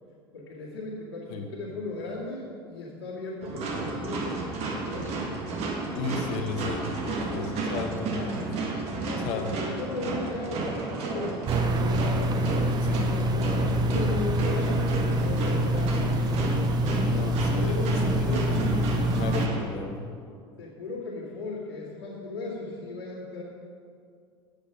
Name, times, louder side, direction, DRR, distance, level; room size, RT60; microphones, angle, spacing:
voice 1, 0.3-5.2 7.3-7.6 9.0-12.3 13.0-16.0 17.2-18.5 20.6-23.4, left 3 dB, 75° left, -8 dB, 2.1 m, -37 dB
sound 1, 3.4-19.6, right 3 dB, 50° right, 1.7 m, -32 dB
voice 2, 5.9-8.6 9.1-9.5 12.8-13.1 17.0-18.9 19.1-20.0, left 4 dB, 55° left, 4 dB, 1.3 m, -34 dB
sound 2, 11.5-19.5, right 1 dB, 30° right, 0.7 m, -26 dB
8.3 x 8.3 x 5.6 m, 2.4 s
figure-of-eight pair, 70°, 13 cm